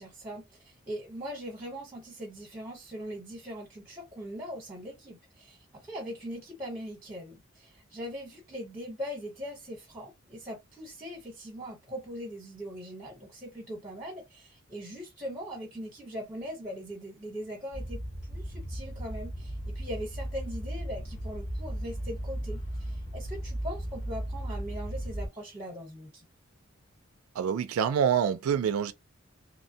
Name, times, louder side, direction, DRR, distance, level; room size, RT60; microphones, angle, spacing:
voice 1, 0.0-26.2, equal, 10° right, 0.9 m, -41 dB
sound 1, 17.7-25.3, equal, 85° left, 1.2 m, -36 dB
voice 2, 27.3-28.9, right 8 dB, 85° right, 0.3 m, -26 dB
3.0 x 2.1 x 2.7 m
head